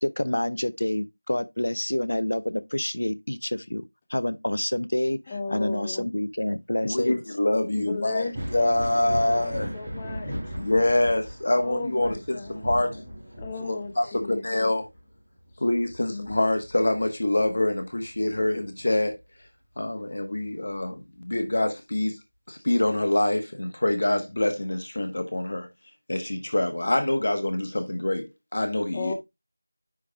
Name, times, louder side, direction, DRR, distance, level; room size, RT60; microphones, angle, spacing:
voice 1, 0.0-3.8 4.1-7.2, left 1 dB, 55° left, 0.7 m, -28 dB
voice 2, 5.3-6.1 7.8-10.3 11.6-13.0 13.4-14.7 16.1-16.3 28.9-29.1, left 4 dB, 10° left, 0.5 m, -36 dB
voice 3, 6.8-9.7 10.6-12.9 13.6-14.8 15.6-19.1 19.8-22.2 22.5-25.7 26.1-28.3 28.5-29.1, left 1 dB, 30° left, 1.1 m, -25 dB
Thunder, 8.2-17.5 17.9-19.1 20.7-20.8 21.6-21.7, equal, 15° right, 1.9 m, -37 dB
9.7 x 3.5 x 3.4 m
figure-of-eight pair, 180°, 0 cm